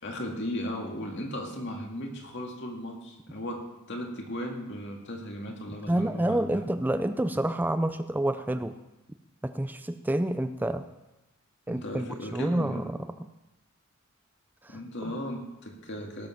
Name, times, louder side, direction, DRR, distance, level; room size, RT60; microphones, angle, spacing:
voice 1, 0.0-6.6 11.7-12.8 14.7-16.3, equal, 55° left, 2 dB, 2.2 m, -36 dB
voice 2, 5.9-8.7 9.4-10.8 11.7-12.1 12.3-13.0 14.6-14.8, right 1 dB, 10° right, 10 dB, 0.4 m, -28 dB
17.5 x 7.4 x 5.9 m, 0.99 s
head